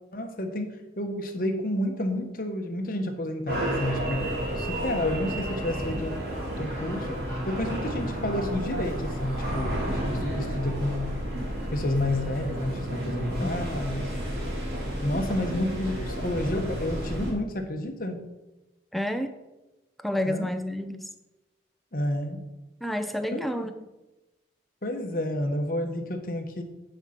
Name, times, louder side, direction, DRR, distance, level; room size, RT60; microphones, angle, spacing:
voice 1, 0.1-0.7 1.0-4.3 4.6-6.1 6.5-7.1 7.5-11.1 11.7-14.1 15.0-18.2 20.2-20.5 21.9-22.4 23.3-23.4 24.8-26.6, left 1 dB, 50° left, 5 dB, 1.1 m, -30 dB
sound 1, 3.5-17.3, equal, 60° right, 3.0 m, -31 dB
voice 2, 13.2-13.7 18.9-19.3 20.0-21.1 22.8-23.7, left 1 dB, ahead, 7 dB, 0.5 m, -30 dB
9.1 x 5.3 x 5.8 m, 1.0 s
head